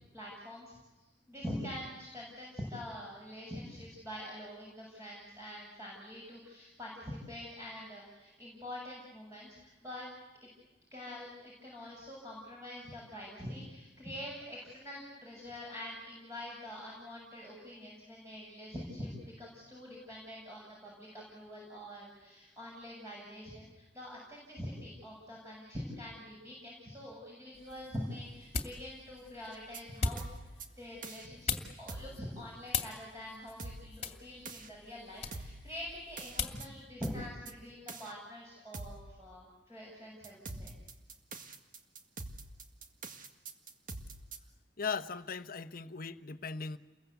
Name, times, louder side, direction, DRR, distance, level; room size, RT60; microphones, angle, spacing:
voice 1, 0.1-0.8 1.3-10.1 10.9-30.2 30.8-40.7, left 1 dB, 15° right, 7.5 m, -45 dB
sound 1, 27.5-36.7, left 4 dB, 35° left, 2.4 m, -41 dB
sound 2, 29.5-29.8 30.2-30.7 31.0-31.3 31.9-32.2 33.6-34.1 34.4-34.7 35.3-35.6 36.2-36.7 37.0-37.5 37.9-38.1 38.7-39.0 40.2-44.4, right 3 dB, 50° right, 2.0 m, -44 dB
voice 2, 44.8-46.8, left 5 dB, 55° left, 1.1 m, -38 dB
30.0 x 22.5 x 8.3 m
head